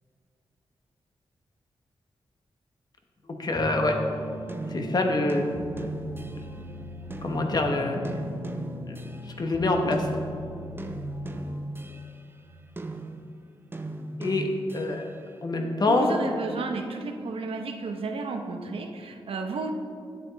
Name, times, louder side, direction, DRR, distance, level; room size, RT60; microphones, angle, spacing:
voice 1, 3.4-4.0 4.7-5.4 5.8-6.0 7.2-8.0 8.8-8.9 9.4-10.1 14.2-14.5 14.7-15.0 15.4-16.1, left 2 dB, 45° left, 3 dB, 1.1 m, -25 dB
sound 1, 3.5-11.6, equal, 5° right, 2.1 m, -40 dB
sound 2, 3.9-6.7 7.1-9.5 9.9-15.2, right 2 dB, 25° right, 0.6 m, -38 dB
voice 2, 15.9-19.7, right 3 dB, 80° right, 5 dB, 0.9 m, -32 dB
9.7 x 8.2 x 4.0 m, 2.3 s
cardioid pair, 90°, 9 cm